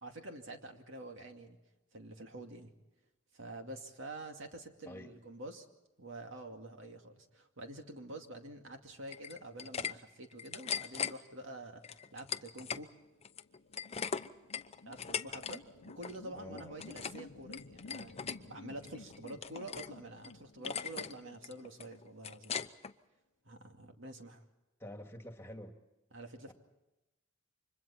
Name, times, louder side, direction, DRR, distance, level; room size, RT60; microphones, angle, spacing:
voice 1, 0.0-1.6 1.9-2.7 3.3-5.7 6.0-12.9 14.8-18.1 18.4-22.6 23.4-24.4 26.1-26.5, right 1 dB, 65° right, 4 dB, 2.3 m, -47 dB
sound 1, 9.1-9.9 10.2-11.1 11.8-12.8 13.2-15.6 15.8-16.2 16.5-17.2 17.5-18.4 18.8-19.9 20.2-20.3 20.6-21.1 21.4-22.9, left 7 dB, 30° left, 0.7 m, -39 dB
sound 2, 12.9-22.5, left 3 dB, 75° left, 0.8 m, -54 dB
voice 2, 16.4-17.0 24.8-25.8 26.5-26.6, left 1 dB, 10° left, 4 dB, 2.2 m, -48 dB
30.0 x 25.0 x 4.4 m, 0.98 s
head